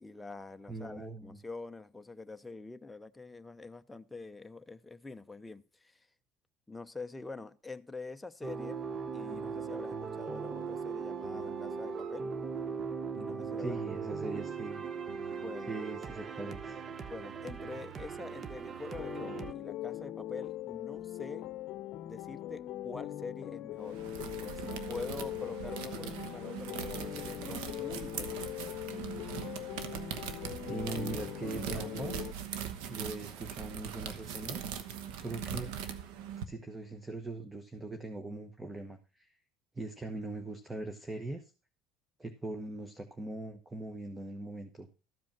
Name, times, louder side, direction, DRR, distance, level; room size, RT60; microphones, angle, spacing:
voice 1, 0.0-6.1 6.7-8.8 9.1-12.3 13.2-13.8 15.4-15.7 17.1-21.5 22.0-24.0 24.4-28.4, left 3 dB, 10° left, 0.7 m, -45 dB
voice 2, 0.7-1.4 13.6-14.8 15.6-16.8 30.6-32.3 32.9-34.7 35.2-35.8 36.5-39.4 39.7-41.5 42.2-44.9, right 2 dB, 10° right, 1.0 m, -41 dB
sound 1, 8.4-19.5, right 5 dB, 35° right, 0.9 m, -39 dB
sound 2, 19.0-32.3, left 13 dB, 60° left, 0.7 m, -41 dB
sound 3, 23.8-36.4, right 8 dB, 80° right, 1.1 m, -41 dB
13.5 x 5.1 x 5.9 m
supercardioid pair, 110°, 0 cm